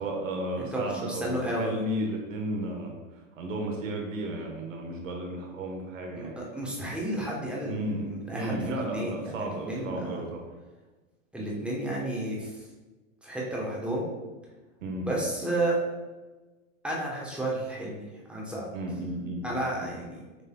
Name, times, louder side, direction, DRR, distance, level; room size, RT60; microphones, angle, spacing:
voice 1, 0.0-6.4 7.7-10.4 14.8-15.1 18.7-19.5 19.7-20.1, right 1 dB, 80° right, 2 dB, 1.1 m, -34 dB
voice 2, 0.6-1.8 6.1-10.2 11.3-12.5 13.2-14.1 15.0-15.8 16.8-18.0 18.3-18.7 19.4-20.2, right 1 dB, 5° right, -4 dB, 1.0 m, -32 dB
5.7 x 3.3 x 2.3 m, 1.2 s
hypercardioid pair, 115°, 39 cm